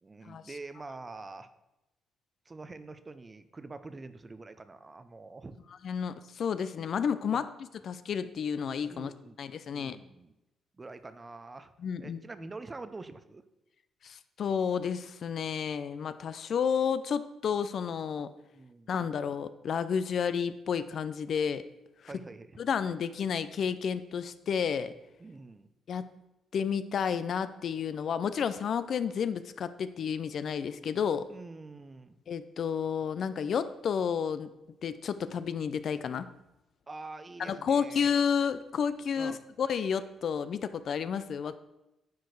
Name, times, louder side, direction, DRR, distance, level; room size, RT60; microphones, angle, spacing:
voice 1, 0.0-1.5 2.5-5.6 7.3-7.5 8.9-9.4 9.7-10.3 10.8-11.7 12.0-13.4 18.5-18.9 22.1-22.6 25.2-25.7 31.3-32.2 36.9-38.1 39.2-39.4, right 3 dB, 25° right, 12 dB, 0.6 m, -45 dB
voice 2, 5.8-7.5 7.8-9.1 9.4-10.0 11.8-12.2 14.0-18.3 18.9-21.6 22.6-24.9 25.9-26.1 26.5-31.3 32.3-34.5 34.8-36.3 37.4-41.6, left 7 dB, 60° left, 13 dB, 0.4 m, -31 dB
9.3 x 4.7 x 4.7 m, 0.94 s
cardioid pair, 90°, 0 cm